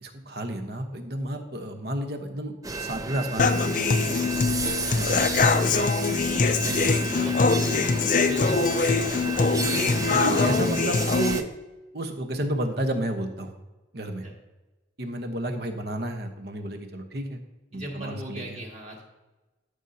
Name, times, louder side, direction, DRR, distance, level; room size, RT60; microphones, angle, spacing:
voice 1, 0.0-3.8 5.0-5.3 6.7-6.9 10.2-11.4 11.9-13.5 13.9-14.3 15.0-17.4 17.7-18.6, right 1 dB, 55° right, 6 dB, 1.0 m, -31 dB
sound 1, 2.6-11.4, right 3 dB, 20° right, 0.5 m, -32 dB
Human voice / Acoustic guitar, 3.4-11.4, left 4 dB, 45° left, 0.5 m, -23 dB
voice 2, 4.0-4.4 5.5-10.4 11.1-11.2 14.2-14.3 17.7-19.1, equal, 35° right, -2 dB, 2.1 m, -40 dB
13.5 x 6.5 x 2.8 m, 1.1 s
head